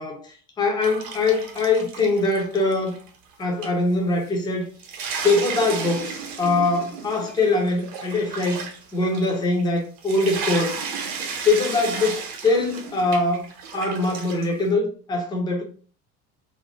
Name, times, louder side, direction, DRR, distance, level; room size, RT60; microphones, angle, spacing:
voice 1, 0.0-3.0 3.4-4.7 5.2-10.8 11.2-13.5 13.7-15.6, left 3 dB, 10° left, 0.3 m, -23 dB
sound 1, 0.8-3.3 3.6-3.7 4.3-4.4 4.6-14.6, right 5 dB, 45° right, 0.7 m, -34 dB
2.6 x 2.2 x 3.1 m
figure-of-eight pair, 65°, 49 cm